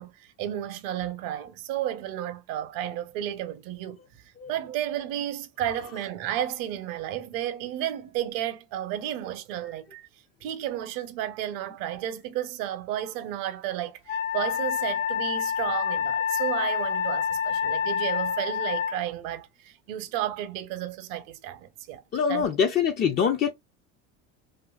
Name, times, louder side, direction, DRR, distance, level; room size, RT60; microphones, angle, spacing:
voice 1, 0.0-4.0 4.5-10.1 10.4-22.0 22.3-22.4, right 11 dB, 60° right, 0.7 m, -32 dB
Wind instrument woodwind instrument, 14.1-19.0, left 7 dB, 85° left, 0.5 m, -27 dB
voice 2, 22.1-23.5, left 7 dB, 25° left, 0.4 m, -24 dB
2.7 x 2.5 x 2.3 m
hypercardioid pair, 85°, 39 cm